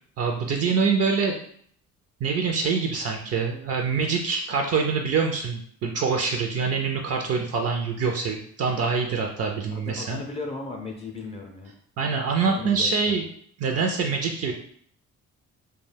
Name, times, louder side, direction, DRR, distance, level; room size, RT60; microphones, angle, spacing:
voice 1, 0.2-1.4 2.2-10.2 12.0-13.2 13.6-14.5, right 5 dB, 55° right, 2 dB, 0.4 m, -25 dB
voice 2, 9.5-11.7 12.4-13.2, left 3 dB, 20° left, 0 dB, 0.4 m, -37 dB
2.3 x 2.2 x 3.2 m, 0.62 s
cardioid pair, 90°, 30 cm